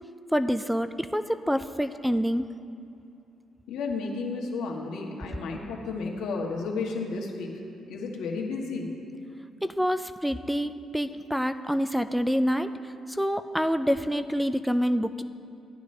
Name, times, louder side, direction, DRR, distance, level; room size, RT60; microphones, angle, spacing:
voice 1, 0.3-2.5 9.6-15.2, equal, ahead, 11 dB, 0.3 m, -27 dB
voice 2, 3.7-7.6 7.9-8.9, left 4 dB, 85° left, 0 dB, 1.3 m, -32 dB
14.5 x 9.5 x 3.2 m, 2.6 s
cardioid pair, 90°, 0 cm